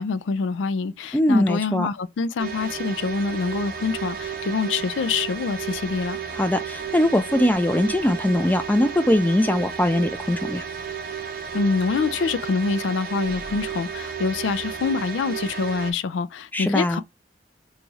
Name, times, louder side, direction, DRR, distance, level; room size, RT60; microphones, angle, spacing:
voice 1, 0.0-6.2 11.5-17.0, left 4 dB, 85° left, 0.4 m, -25 dB
voice 2, 1.1-1.9 6.3-10.7 16.5-17.0, left 1 dB, 10° left, 0.3 m, -21 dB
sound 1, 2.4-15.9, right 7 dB, 50° right, 0.6 m, -33 dB
3.1 x 2.3 x 3.9 m
head